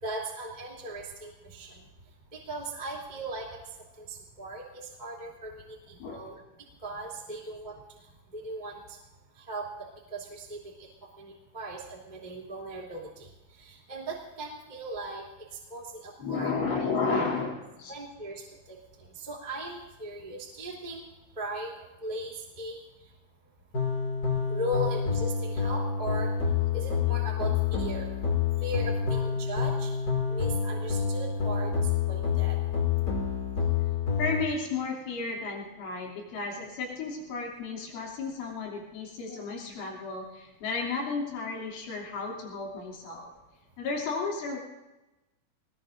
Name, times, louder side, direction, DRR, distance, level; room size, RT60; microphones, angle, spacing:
voice 1, 0.0-1.9 2.3-6.4 6.8-8.0 8.3-9.0 9.4-10.9 11.2-15.2 15.7-16.5 17.9-21.0 21.4-22.8 24.5-26.3 26.7-28.1 28.6-30.0 30.3-32.6, right 1 dB, 10° right, -4 dB, 2.2 m, -38 dB
voice 2, 16.2-17.9 34.2-43.3 43.8-44.6, left 4 dB, 80° left, -3 dB, 5.4 m, -33 dB
sound 1, 23.7-34.4, left 6 dB, 30° left, 1.9 m, -28 dB
25.5 x 20.5 x 2.6 m, 1.0 s
omnidirectional pair, 5.5 m